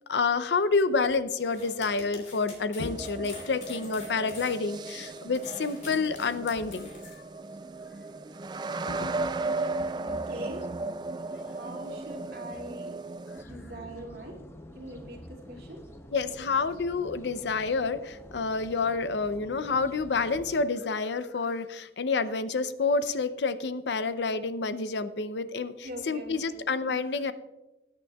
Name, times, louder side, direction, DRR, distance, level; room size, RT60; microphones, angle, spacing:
voice 1, 0.1-6.9 8.9-9.3 16.1-27.3, left 4 dB, 80° left, 12 dB, 0.6 m, -29 dB
sound 1, 1.4-7.2, left 3 dB, 40° left, 2.8 m, -46 dB
sound 2, 2.8-13.4, right 3 dB, 25° right, 0.3 m, -36 dB
voice 2, 9.4-10.8 11.5-13.0 13.4-14.5 14.7-15.9 25.8-26.9, right 1 dB, 60° right, -1 dB, 2.4 m, -43 dB
sound 3, 13.4-20.7, left 1 dB, 15° left, 0.6 m, -48 dB
20.0 x 8.9 x 2.3 m, 1.0 s
head